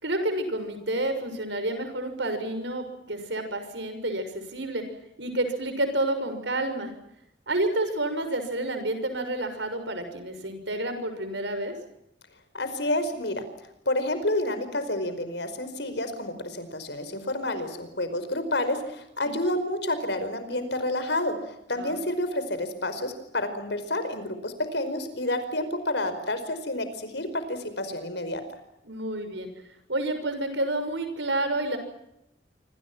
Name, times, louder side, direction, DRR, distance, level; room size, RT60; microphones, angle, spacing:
voice 1, 0.0-4.8 5.2-6.9 7.5-11.7 19.2-19.3 21.7-22.0 28.8-29.5 29.9-31.8, right 1 dB, 85° right, 8 dB, 6.5 m, -29 dB
voice 2, 12.5-13.4 13.9-28.4, left 1 dB, 75° left, 10 dB, 5.0 m, -29 dB
26.5 x 26.5 x 6.0 m, 0.82 s
head